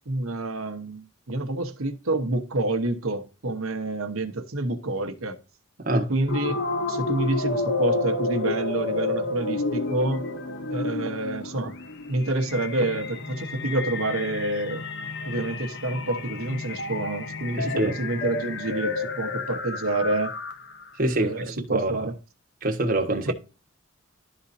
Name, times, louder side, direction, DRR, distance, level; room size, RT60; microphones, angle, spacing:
voice 1, 0.1-5.4 5.9-6.6 6.9-10.2 10.7-11.8 12.1-14.8 15.2-20.3 21.1-22.1 23.3-23.4, right 2 dB, 75° right, 1.1 m, -28 dB
sound 1, 6.3-20.8, left 3 dB, 55° left, 0.8 m, -30 dB
voice 2, 17.6-17.9 21.0-22.1 22.6-23.3, right 1 dB, 40° right, 1.3 m, -25 dB
12.5 x 4.1 x 2.7 m
head